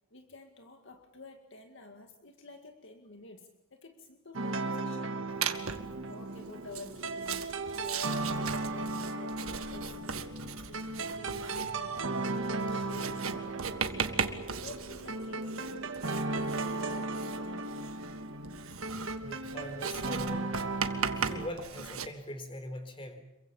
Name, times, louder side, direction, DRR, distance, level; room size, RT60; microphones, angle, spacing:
voice 1, 0.1-9.4 9.7-13.8 14.1-17.7, left 2 dB, 60° left, 4 dB, 2.0 m, -50 dB
sound 1, 4.3-21.5, right 2 dB, 65° right, 1.7 m, -36 dB
Writing, 5.4-5.9 6.6-22.1, right 6 dB, 90° right, 1.7 m, -38 dB
voice 2, 19.2-20.5 21.1-23.2, left 1 dB, 25° left, 8 dB, 3.9 m, -42 dB
27.5 x 23.5 x 7.1 m, 0.92 s
head